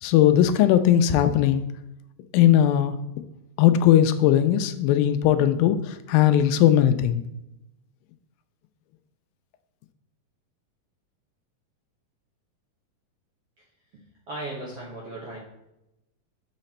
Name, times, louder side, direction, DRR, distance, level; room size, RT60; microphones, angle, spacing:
voice 1, 0.0-1.6 2.3-3.0 3.6-7.2, left 11 dB, 85° left, 10 dB, 2.3 m, -19 dB
voice 2, 13.9-15.4, right 2 dB, 65° right, -3 dB, 1.5 m, -37 dB
6.7 x 5.8 x 4.2 m, 0.88 s
omnidirectional pair, 4.2 m